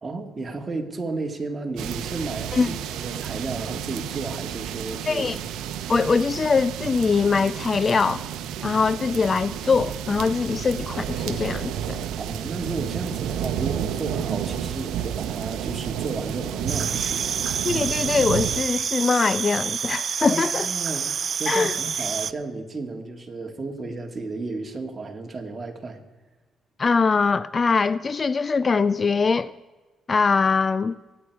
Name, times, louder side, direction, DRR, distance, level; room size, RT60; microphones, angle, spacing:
voice 1, 0.0-5.4 12.2-17.4 20.2-26.0, right 3 dB, 30° right, 2.1 m, -33 dB
sound 1, 1.8-18.6, right 9 dB, 90° right, 0.7 m, -31 dB
voice 2, 5.1-5.4 5.9-8.2 8.6-12.0 17.6-20.7 21.5-21.8 26.8-29.5 30.1-31.0, left 4 dB, 35° left, 0.3 m, -22 dB
sound 2, 16.7-22.3, right 7 dB, 50° right, 0.4 m, -28 dB
23.5 x 9.4 x 4.8 m
cardioid pair, 90°, 0 cm